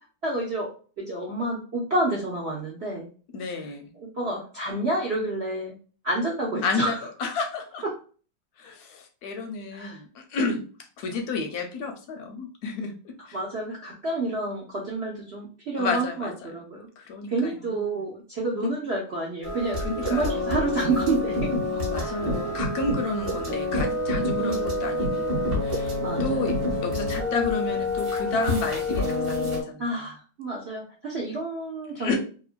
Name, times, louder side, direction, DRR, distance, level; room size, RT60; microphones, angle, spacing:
voice 1, 0.2-0.7 1.0-3.1 4.0-5.8 6.0-7.0 9.7-10.0 13.3-16.9 17.3-19.8 20.1-21.5 24.4-24.8 26.0-26.5 29.8-32.2, right 2 dB, 60° right, -4 dB, 0.6 m, -29 dB
voice 2, 3.3-3.9 6.6-7.8 8.6-10.6 11.0-13.4 15.8-16.5 17.0-17.8 18.6-18.7 19.8-20.5 21.7-26.5 26.8-29.9 31.9-32.2, left 3 dB, 70° left, 4 dB, 1.0 m, -31 dB
sound 1, 19.4-29.6, left 1 dB, 35° right, 1.1 m, -27 dB
2.9 x 2.6 x 2.4 m, 0.38 s
omnidirectional pair, 2.0 m